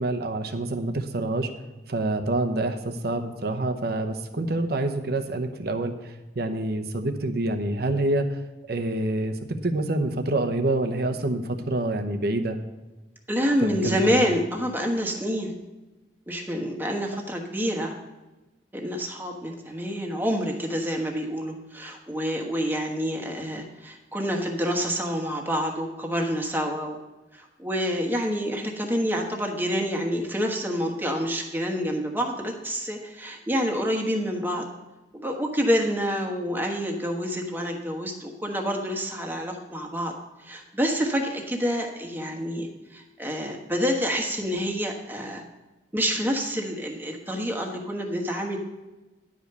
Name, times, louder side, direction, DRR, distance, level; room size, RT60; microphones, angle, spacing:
voice 1, 0.0-1.5 1.9-8.4 8.7-12.6 13.6-14.2, right 2 dB, 60° right, 6 dB, 0.9 m, -27 dB
voice 2, 13.3-15.5 16.3-18.0 18.7-27.0 27.3-34.7 35.1-40.1 40.4-45.4 45.9-48.6, equal, 10° right, 1 dB, 1.3 m, -27 dB
10.5 x 5.1 x 6.8 m, 1.1 s
head